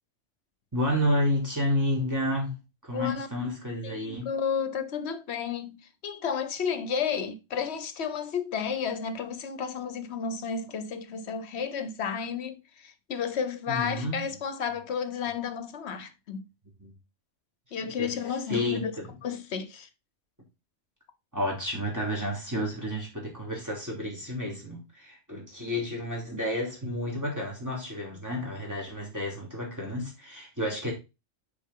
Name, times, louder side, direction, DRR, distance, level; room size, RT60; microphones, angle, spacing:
voice 1, 0.7-4.3 13.7-14.2 16.8-16.9 17.8-18.1 18.5-19.2 21.3-30.9, left 1 dB, 15° right, 2.9 m, -31 dB
voice 2, 2.9-3.3 3.8-16.4 17.7-18.9 19.2-19.9, left 6 dB, 60° left, 1.1 m, -32 dB
7.0 x 4.7 x 3.7 m
omnidirectional pair, 1.3 m